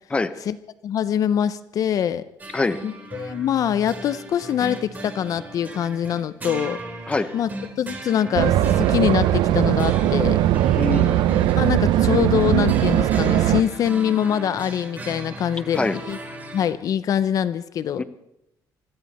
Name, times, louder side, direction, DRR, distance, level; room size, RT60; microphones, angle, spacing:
voice 1, 0.8-2.2 2.8-6.8 7.3-7.5 7.8-10.4 11.6-16.2 16.5-18.0, left 9 dB, 50° left, 14 dB, 0.5 m, -24 dB
sound 1, 2.4-16.7, right 2 dB, 25° right, 2.8 m, -37 dB
sound 2, 8.3-13.6, right 13 dB, 80° right, 0.7 m, -19 dB
voice 2, 10.8-11.3 15.7-16.0 18.0-18.1, left 3 dB, 15° left, 11 dB, 0.7 m, -24 dB
25.0 x 13.5 x 4.2 m, 0.84 s
cardioid pair, 150°, 8 cm